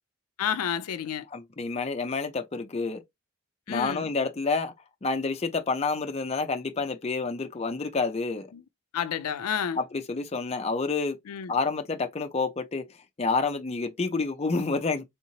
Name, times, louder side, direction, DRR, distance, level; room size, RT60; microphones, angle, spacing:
voice 1, 0.4-1.2 3.7-4.1 8.5-8.6 8.9-9.8 11.3-11.5, left 8 dB, 85° left, 0.4 m, -30 dB
voice 2, 1.3-3.0 3.7-4.7 5.0-8.5 9.8-11.2 11.5-12.9 13.2-15.0, left 4 dB, 30° left, 0.4 m, -28 dB
3.5 x 2.9 x 2.7 m
head